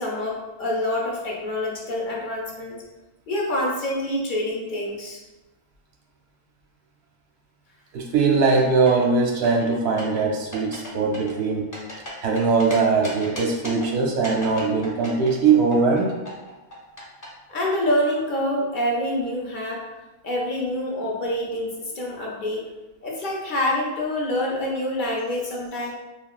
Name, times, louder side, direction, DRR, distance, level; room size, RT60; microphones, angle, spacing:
voice 1, 0.0-2.8 3.3-5.2 17.5-19.8 20.2-22.7 23.0-25.9, left 1 dB, 60° left, -3 dB, 0.6 m, -26 dB
voice 2, 7.9-11.7 12.2-16.2, right 4 dB, 85° right, 0 dB, 0.9 m, -21 dB
sound 1, 8.3-9.1 9.4-10.2 10.5-10.9 11.1-12.7 13.0-13.9 14.2-17.3, equal, 20° left, 0.6 m, -36 dB
3.5 x 2.1 x 2.3 m, 1.1 s
omnidirectional pair, 1.1 m